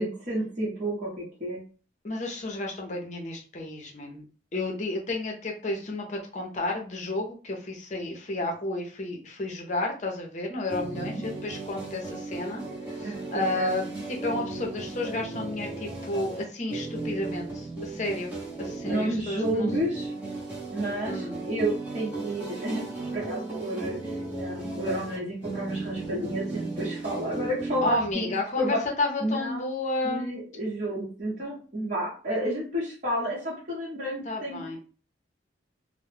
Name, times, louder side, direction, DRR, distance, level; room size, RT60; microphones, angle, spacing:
voice 1, 0.0-1.6 10.9-11.2 13.0-13.8 18.9-20.1 20.7-22.8 23.1-24.1 24.4-28.3 28.6-28.8 29.2-29.7 30.0-34.8, right 1 dB, 40° right, -7 dB, 0.9 m, -31 dB
voice 2, 2.0-4.2 4.5-12.6 12.9-18.3 18.6-19.7 21.0-21.4 27.8-30.3 34.2-34.8, left 2 dB, 40° left, 1 dB, 0.6 m, -32 dB
sound 1, 10.7-28.1, right 3 dB, 10° right, 0.7 m, -36 dB
2.2 x 2.0 x 3.2 m, 0.38 s
head